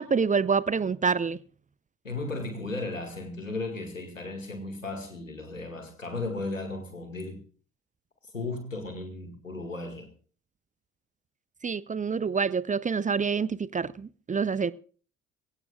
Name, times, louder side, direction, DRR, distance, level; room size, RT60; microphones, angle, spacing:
voice 1, 0.0-1.4 11.6-14.7, right 5 dB, 20° right, 0.6 m, -27 dB
voice 2, 2.0-7.4 8.2-10.1, left 2 dB, 90° left, 2.0 m, -35 dB
23.0 x 17.0 x 2.4 m
figure-of-eight pair, 50°, 38 cm